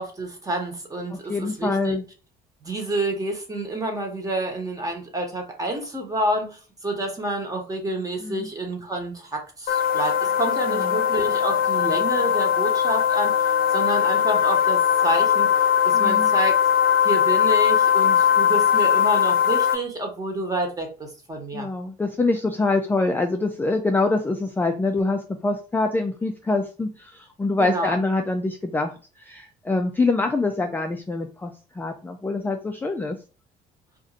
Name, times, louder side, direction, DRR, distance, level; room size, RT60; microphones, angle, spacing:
voice 1, 0.0-2.0 2.6-15.5 15.8-16.5 17.0-21.7 27.6-28.0, right 1 dB, 20° right, 2 dB, 1.1 m, -28 dB
voice 2, 1.1-2.0 8.2-8.5 10.7-11.0 15.9-16.3 21.5-28.9 29.2-33.2, left 3 dB, 10° left, 4 dB, 0.3 m, -25 dB
sound 1, 9.7-19.7, left 8 dB, 60° left, 0.6 m, -20 dB
2.5 x 2.5 x 4.0 m, 0.35 s
cardioid pair, 110°, 17 cm